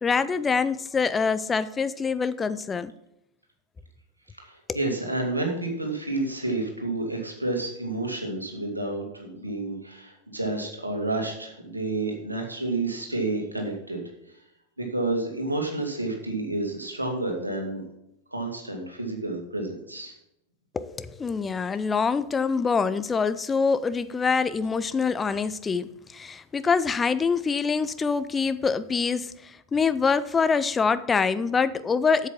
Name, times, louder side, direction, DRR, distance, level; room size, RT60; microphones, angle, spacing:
voice 1, 0.0-2.9 4.7-4.8 20.7-32.3, left 5 dB, 15° left, 0.5 m, -25 dB
voice 2, 4.4-14.0 14.3-14.4 14.8-17.8 18.3-20.1, right 2 dB, 85° right, 2.3 m, -30 dB
8.2 x 7.5 x 5.9 m
figure-of-eight pair, 90°, 0 cm